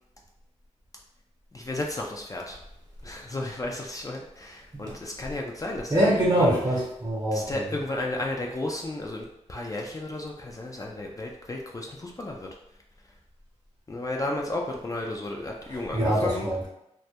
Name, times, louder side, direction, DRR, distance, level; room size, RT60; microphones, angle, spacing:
voice 1, 1.5-2.6 3.0-6.6 7.3-12.5 13.9-16.5, left 2 dB, 30° left, 0 dB, 0.3 m, -33 dB
voice 2, 5.9-7.7 15.7-16.7, right 1 dB, 35° right, -4 dB, 0.6 m, -24 dB
2.2 x 2.0 x 2.7 m, 0.81 s
wide cardioid pair, 70°, 13 cm